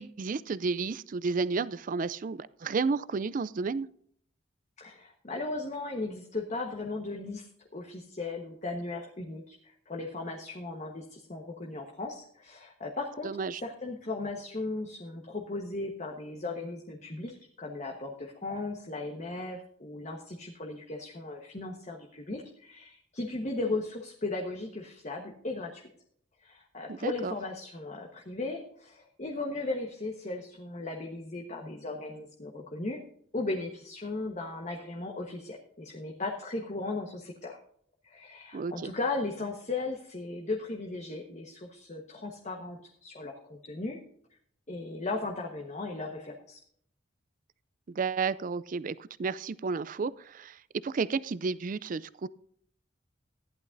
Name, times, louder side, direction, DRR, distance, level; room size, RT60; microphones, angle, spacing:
voice 1, 0.0-3.9 13.2-13.6 26.9-27.3 38.5-38.9 47.9-52.3, right 4 dB, 45° right, 18 dB, 0.4 m, -32 dB
voice 2, 4.8-7.5 7.7-13.3 13.6-25.9 26.4-33.0 33.3-37.6 38.0-44.0 44.7-46.6, left 2 dB, 35° left, 1 dB, 1.2 m, -37 dB
15.0 x 11.0 x 2.6 m, 0.64 s
head